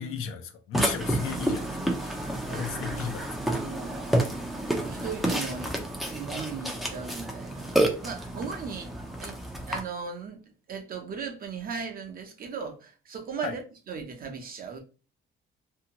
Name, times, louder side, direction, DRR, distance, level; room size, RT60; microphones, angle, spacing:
voice 1, 0.0-3.4 13.4-13.5, left 7 dB, 80° left, 0.6 m, -36 dB
Burping eructation, 0.7-9.8, right 1 dB, ahead, 0.4 m, -30 dB
voice 2, 0.8-1.4 1.8-1.9 2.5-4.2 4.7-5.7 6.1-7.8 8.0-8.9 9.2-9.4 9.7-13.6 13.9-14.8, right 6 dB, 45° right, 0.6 m, -38 dB
2.7 x 2.2 x 2.8 m
cardioid pair, 145°, 21 cm